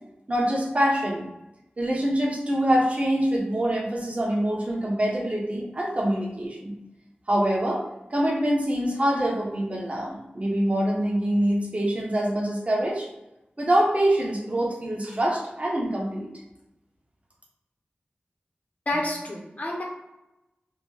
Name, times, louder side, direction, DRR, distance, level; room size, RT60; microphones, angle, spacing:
voice 1, 0.3-1.2 1.8-6.7 7.3-7.8 8.1-13.1 13.6-16.3, right 1 dB, 40° right, -3 dB, 1.2 m, -25 dB
voice 2, 18.9-19.8, left 1 dB, 45° left, -1 dB, 0.8 m, -29 dB
3.9 x 2.2 x 3.5 m, 0.93 s
wide cardioid pair, 55°, 4 cm